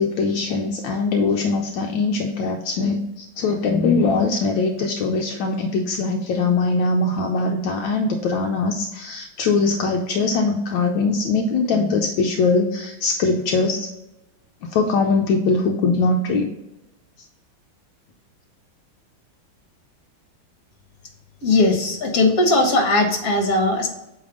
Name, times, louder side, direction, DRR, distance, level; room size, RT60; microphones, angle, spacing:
voice 1, 0.0-13.9 14.7-16.5, left 3 dB, 75° left, 2 dB, 1.3 m, -21 dB
voice 2, 21.4-23.9, left 2 dB, 50° left, 3 dB, 1.7 m, -18 dB
8.3 x 3.5 x 3.8 m, 0.94 s
omnidirectional pair, 2.2 m